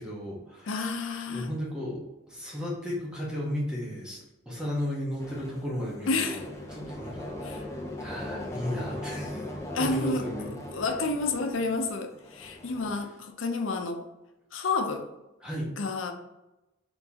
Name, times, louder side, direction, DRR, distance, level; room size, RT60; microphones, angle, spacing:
voice 1, 0.0-0.8 1.3-10.6 15.4-15.7, equal, 5° right, -4 dB, 1.1 m, -35 dB
voice 2, 0.7-1.5 6.1-6.4 7.4-7.6 9.7-10.2 10.7-14.0 14.5-15.1 15.8-16.1, left 3 dB, 85° left, 5 dB, 0.6 m, -30 dB
sound 1, 5.2-13.0, left 1 dB, 15° left, 0.5 m, -39 dB
4.4 x 3.8 x 2.8 m, 0.99 s
head